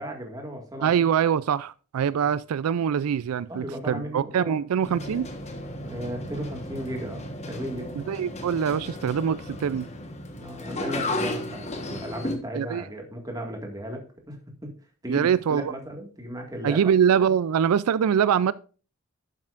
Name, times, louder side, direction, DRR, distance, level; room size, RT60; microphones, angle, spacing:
voice 1, 0.0-0.9 3.5-4.6 5.8-7.9 10.4-14.0 14.3-14.4 14.6-14.7 15.0-16.8, equal, 15° right, 1.9 m, -35 dB
voice 2, 0.8-5.3 8.0-9.9 12.5-12.8 15.1-15.7 16.6-18.5, right 8 dB, 85° right, 0.4 m, -24 dB
sound 1, 4.8-12.3, left 1 dB, 30° left, 1.2 m, -34 dB
12.0 x 7.6 x 2.5 m
head